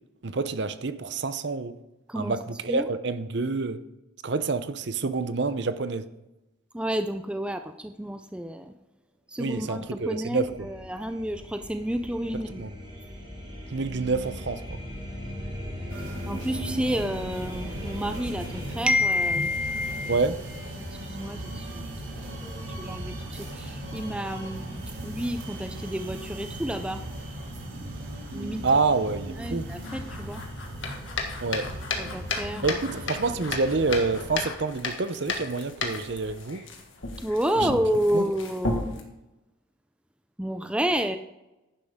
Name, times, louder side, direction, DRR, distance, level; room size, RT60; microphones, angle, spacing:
voice 1, 0.2-1.8 2.1-3.8 4.2-6.1 9.4-10.5 12.6-12.7 13.7-14.8 20.1-20.4 28.6-29.7 31.4-31.7 32.6-36.6 37.6-37.7 38.1-38.2, right 3 dB, 55° right, 12 dB, 0.6 m, -27 dB
voice 2, 6.7-8.7 9.3-12.6 16.3-20.2 21.0-21.9 22.4-27.0 28.3-28.6 29.4-30.4 32.0-32.8 37.2-38.8 40.4-41.2, equal, 5° right, 8 dB, 0.4 m, -29 dB
sound 1, 10.0-18.8, left 1 dB, 25° right, 3.6 m, -38 dB
sound 2, 15.9-34.4, right 1 dB, 85° right, 3.2 m, -38 dB
sound 3, 29.7-39.0, left 3 dB, 75° left, 1.7 m, -34 dB
11.0 x 10.5 x 3.6 m, 0.98 s
head